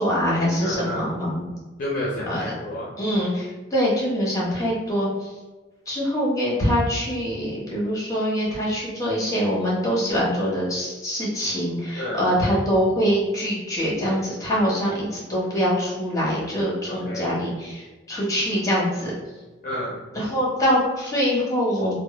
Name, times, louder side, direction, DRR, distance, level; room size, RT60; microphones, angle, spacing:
voice 1, 0.0-1.5 2.3-2.5 3.0-5.3 5.9-19.1 20.1-21.9, equal, 20° left, -6 dB, 0.9 m, -24 dB
voice 2, 0.6-1.0 1.8-2.9 12.0-12.2 16.9-17.4 19.6-20.0, left 1 dB, 45° left, -4 dB, 0.5 m, -30 dB
2.1 x 2.0 x 2.9 m, 1.2 s
head